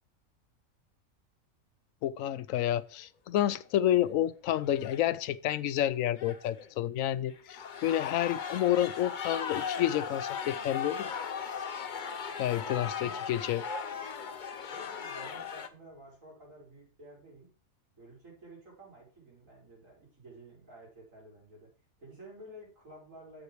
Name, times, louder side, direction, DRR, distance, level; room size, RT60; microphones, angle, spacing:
voice 1, 2.0-11.1 12.4-13.6, left 12 dB, 80° left, 1.0 m, -29 dB
sound 1, 3.4-3.7 3.9-4.0 4.6-5.1 6.2-6.7 7.3-15.7, left 6 dB, 45° left, 0.8 m, -38 dB
voice 2, 12.3-13.2 14.7-17.5 18.0-21.7 22.0-23.4, right 1 dB, 75° right, 5.7 m, -52 dB
8.2 x 7.3 x 4.6 m
omnidirectional pair, 1.4 m